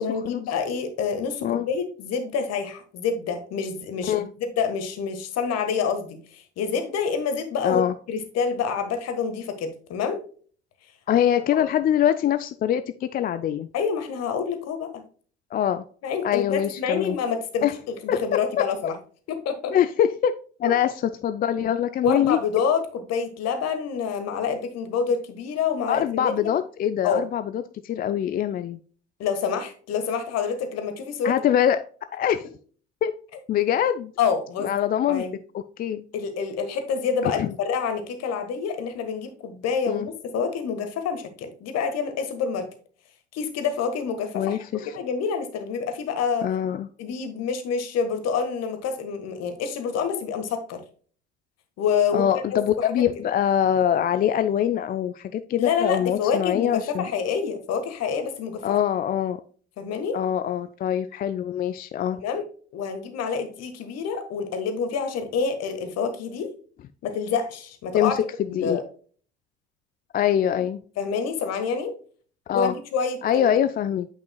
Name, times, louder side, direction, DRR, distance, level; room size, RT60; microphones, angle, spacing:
voice 1, 0.0-4.1 4.6-7.8 8.1-10.2 13.7-15.0 16.0-18.9 19.3-19.7 20.6-20.7 22.0-22.8 23.1-26.5 27.0-27.2 29.2-31.5 34.2-34.7 35.1-35.3 36.1-42.7 43.3-44.6 44.9-46.5 47.0-50.8 51.8-53.1 55.6-58.8 59.8-60.2 62.2-62.4 62.7-66.5 67.0-68.1 68.5-68.8 71.0-71.9 72.5-73.6, left 6 dB, 50° left, 8 dB, 1.5 m, -27 dB
voice 2, 7.6-7.9 11.1-13.7 15.5-15.8 16.2-17.2 17.6-17.7 18.1-18.2 19.7-22.4 25.9-28.8 31.2-31.8 32.1-32.5 33.0-33.1 33.5-34.1 34.6-35.2 35.5-36.0 37.2-37.5 39.9-40.1 44.3-44.9 46.4-46.9 52.1-57.1 58.6-59.4 60.1-62.2 67.9-68.8 70.1-70.8 72.5-72.7 73.2-74.1, left 10 dB, 25° left, 11 dB, 0.4 m, -24 dB
8.9 x 5.4 x 2.2 m, 0.43 s
figure-of-eight pair, 55°, 34 cm